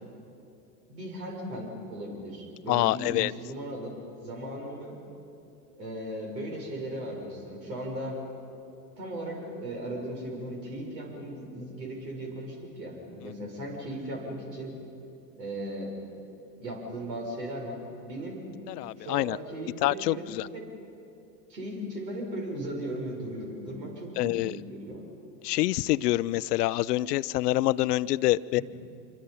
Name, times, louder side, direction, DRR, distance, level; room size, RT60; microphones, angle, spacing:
voice 1, 0.9-3.9 4.2-5.0 5.8-8.2 9.0-14.8 15.3-15.9 16.6-18.4 19.0-20.2 20.5-20.7 21.5-25.0 28.6-28.7, right 1 dB, 80° right, 0 dB, 6.6 m, -37 dB
voice 2, 2.7-3.3 18.7-19.4 19.8-20.5 24.2-24.6 25.4-28.6, left 16 dB, 70° left, 19 dB, 0.6 m, -26 dB
26.5 x 24.0 x 5.7 m, 2.7 s
hypercardioid pair, 90°, 49 cm